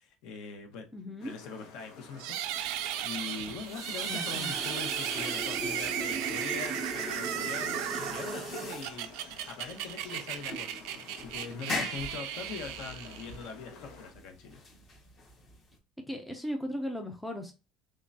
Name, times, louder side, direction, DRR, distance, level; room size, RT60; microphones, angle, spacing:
voice 1, 0.0-0.9 1.2-9.1 9.4-14.6, left 5 dB, 60° left, 5 dB, 0.9 m, -42 dB
voice 2, 0.9-1.3 4.1-4.5 16.1-17.5, equal, 5° left, 3 dB, 0.4 m, -37 dB
sound 1, 1.2-14.1, left 5 dB, 80° left, 1.0 m, -52 dB
sound 2, 2.2-13.5, right 11 dB, 75° right, 0.4 m, -36 dB
sound 3, 3.3-15.8, left 1 dB, 25° left, 0.8 m, -40 dB
3.7 x 3.2 x 2.6 m, 0.29 s
cardioid pair, 180°, 0 cm